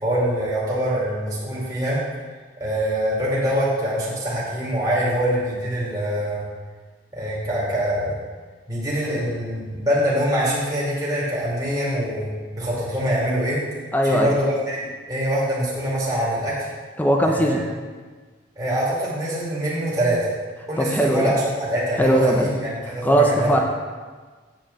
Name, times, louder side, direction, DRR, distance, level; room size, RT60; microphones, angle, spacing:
voice 1, 0.0-2.0 2.6-6.4 7.1-8.2 8.7-13.6 14.0-16.6 17.2-17.6 18.6-20.2 20.7-23.6, equal, 20° right, -8 dB, 2.4 m, -24 dB
voice 2, 13.9-14.3 17.0-17.6 20.8-21.3 22.0-22.5 23.0-23.6, right 1 dB, 10° left, 1 dB, 0.7 m, -19 dB
9.0 x 4.9 x 6.9 m, 1.4 s
head